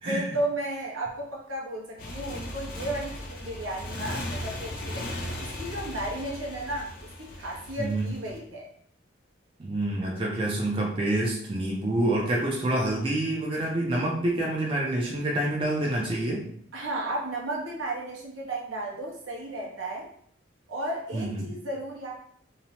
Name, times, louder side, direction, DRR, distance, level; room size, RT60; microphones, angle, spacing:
voice 1, 0.0-8.7 16.7-20.1 20.7-22.1, right 1 dB, 85° right, -2 dB, 0.8 m, -34 dB
Motorcycle, 2.0-8.4, left 1 dB, 45° left, 0.4 m, -37 dB
voice 2, 7.8-8.1 9.6-16.4 21.1-21.5, right 1 dB, 25° right, -2 dB, 0.4 m, -27 dB
2.8 x 2.0 x 2.8 m, 0.63 s
head